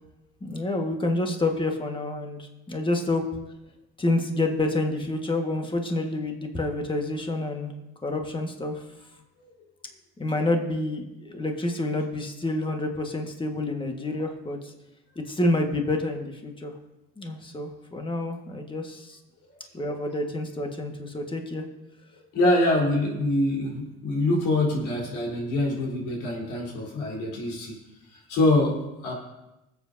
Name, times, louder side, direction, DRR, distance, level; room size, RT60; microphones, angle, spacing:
voice 1, 0.4-3.2 4.0-7.7 8.0-8.8 10.2-14.7 15.2-16.7 17.2-19.2 19.7-21.7, left 2 dB, 15° left, 3 dB, 1.6 m, -28 dB
voice 2, 22.3-27.7 28.3-28.8 29.0-29.1, left 1 dB, 80° left, -3 dB, 4.0 m, -24 dB
24.5 x 8.2 x 2.8 m, 0.94 s
cardioid pair, 95°, 30 cm